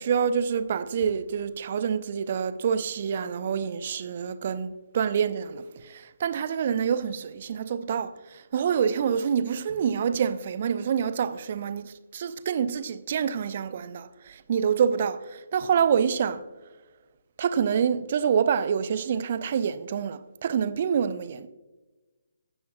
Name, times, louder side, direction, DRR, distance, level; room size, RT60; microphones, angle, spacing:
voice 1, 0.0-16.4 17.4-21.5, right 7 dB, 40° right, 0.6 m, -27 dB
15.5 x 11.0 x 2.3 m
figure-of-eight pair, 140°, 0 cm